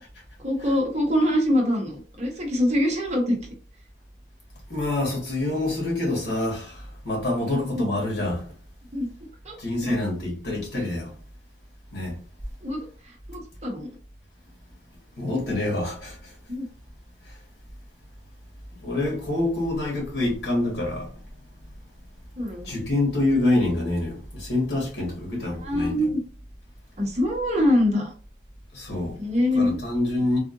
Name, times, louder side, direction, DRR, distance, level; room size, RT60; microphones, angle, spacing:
voice 1, 0.4-3.4 8.9-9.1 9.4-9.5 9.8-10.0 12.6-12.8 13.3-13.9 16.5-16.6 22.4-22.7 25.6-26.2 27.0-28.1 29.2-29.8, left 1 dB, 35° right, 0.8 m, -24 dB
voice 2, 4.7-8.4 9.6-11.1 11.9-12.2 15.2-16.3 18.8-21.1 22.6-26.1 28.7-29.2 29.5-30.4, left 2 dB, 70° left, 1.6 m, -26 dB
3.6 x 2.5 x 2.5 m
head